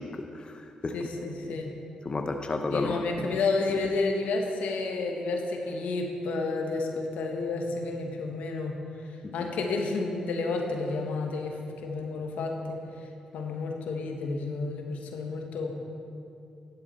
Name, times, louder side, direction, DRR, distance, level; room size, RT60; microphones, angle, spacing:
voice 1, 0.0-1.6 2.0-3.4 9.2-9.5, left 2 dB, 40° left, 5 dB, 0.7 m, -33 dB
voice 2, 0.9-1.7 2.7-8.7 9.3-12.8 13.3-15.7, left 3 dB, 85° left, 2 dB, 1.0 m, -31 dB
11.0 x 8.1 x 4.2 m, 2.6 s
supercardioid pair, 55°, 3 cm